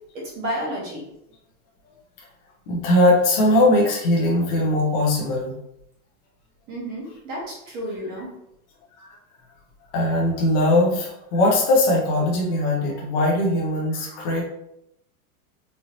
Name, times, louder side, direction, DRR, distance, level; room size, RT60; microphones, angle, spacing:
voice 1, 0.3-1.0 6.7-8.3, equal, 20° right, -3 dB, 0.9 m, -31 dB
voice 2, 2.7-5.5 9.0-9.2 9.9-14.4, left 1 dB, 20° left, -4 dB, 0.4 m, -20 dB
4.1 x 2.9 x 2.8 m, 0.79 s
supercardioid pair, 175°, 45 cm